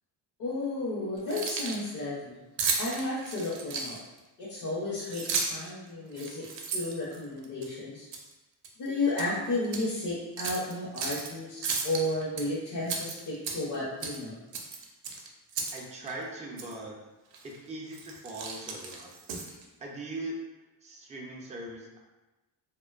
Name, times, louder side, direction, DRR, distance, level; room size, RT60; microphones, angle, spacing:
voice 1, 0.4-2.4 2.8-4.0 4.4-6.5 6.7-8.1 8.8-14.4, left 2 dB, 55° left, -6 dB, 0.7 m, -33 dB
Keys jangling, 1.2-1.9 2.6-4.2 5.0-5.7 6.1-7.7 8.1-8.3 8.6-9.3 9.6-9.8 10.4-11.3 11.6-12.4 12.8-13.8 14.0-14.2 14.5-15.8 16.1-16.2 16.6-16.7 17.3-17.6 17.9-19.6, right 5 dB, 75° right, 0.5 m, -34 dB
voice 2, 15.7-17.0 17.4-19.1 19.8-20.4 20.8-22.0, right 1 dB, 20° right, -2 dB, 0.3 m, -40 dB
2.5 x 2.1 x 2.3 m, 1.1 s
cardioid pair, 115°, 44 cm